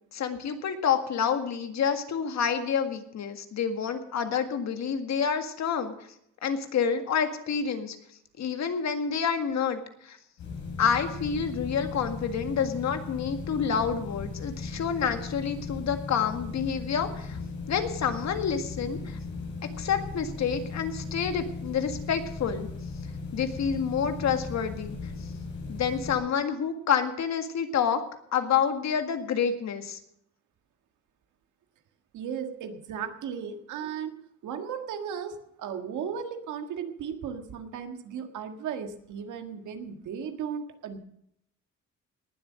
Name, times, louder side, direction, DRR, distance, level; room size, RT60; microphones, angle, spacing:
voice 1, 0.1-5.9 6.4-8.0 8.4-10.2 10.8-17.4 17.7-19.2 19.8-22.7 23.3-25.1 25.7-28.0 28.3-30.0, left 7 dB, 65° left, 7 dB, 1.9 m, -28 dB
sound 1, 10.4-26.1, left 4 dB, 85° left, 6.2 m, -37 dB
voice 2, 32.1-34.2 34.4-41.0, right 7 dB, 80° right, 6 dB, 1.7 m, -36 dB
19.0 x 7.9 x 6.4 m, 0.74 s
cardioid pair, 90°, 30 cm